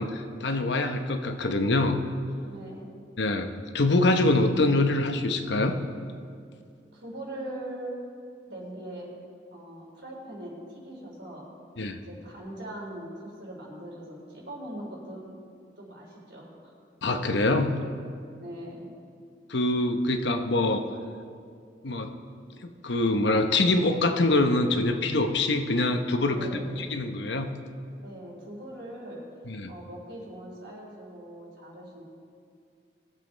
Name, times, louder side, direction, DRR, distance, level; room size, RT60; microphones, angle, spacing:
voice 1, 0.0-2.0 3.2-5.8 11.8-12.0 17.0-17.8 19.5-20.9 21.8-22.1 22.8-26.4 26.8-27.5 29.5-29.7, left 2 dB, 75° left, 6 dB, 0.9 m, -24 dB
voice 2, 2.4-2.9 6.9-7.9 8.5-9.1 9.5-11.5 12.0-15.2 15.7-16.7 18.3-18.9 26.3-26.8 28.0-29.2 29.7-32.0, right 1 dB, 85° right, -3 dB, 3.7 m, -41 dB
20.5 x 7.6 x 4.1 m, 2.3 s
head